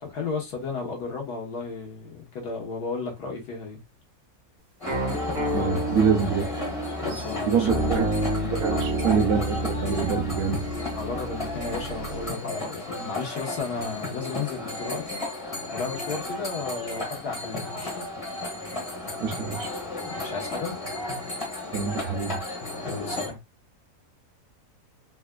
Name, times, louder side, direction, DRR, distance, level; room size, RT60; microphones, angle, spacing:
voice 1, 0.0-3.8 6.9-8.2 8.7-8.9 10.9-15.2 15.7-18.0 20.1-20.7 22.8-23.4, left 4 dB, 85° left, 1.7 m, -34 dB
sound 1, 4.8-23.3, left 2 dB, 20° left, 1.3 m, -34 dB
sound 2, 4.9-12.3, right 1 dB, 50° right, 1.3 m, -30 dB
voice 2, 5.5-6.5 7.5-8.0 8.5-10.6 19.2-19.7 21.7-22.4, right 6 dB, 75° right, 1.1 m, -25 dB
sound 3, 7.1-7.6 8.7-10.0 11.3-12.2, right 3 dB, 10° right, 1.2 m, -48 dB
4.0 x 2.3 x 2.2 m
omnidirectional pair, 1.7 m